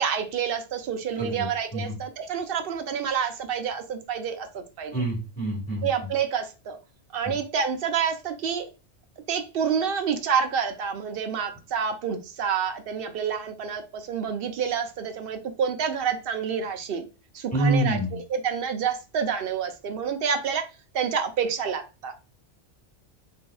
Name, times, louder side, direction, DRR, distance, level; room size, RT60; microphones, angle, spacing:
voice 1, 0.0-5.0 5.8-6.8 7.1-8.7 9.3-17.0 17.3-20.7 20.9-22.1, right 7 dB, 60° right, 7 dB, 0.7 m, -28 dB
voice 2, 4.9-5.9 17.5-18.2, right 1 dB, 5° left, -4 dB, 1.4 m, -26 dB
4.0 x 2.6 x 2.3 m, 0.31 s
omnidirectional pair, 1.2 m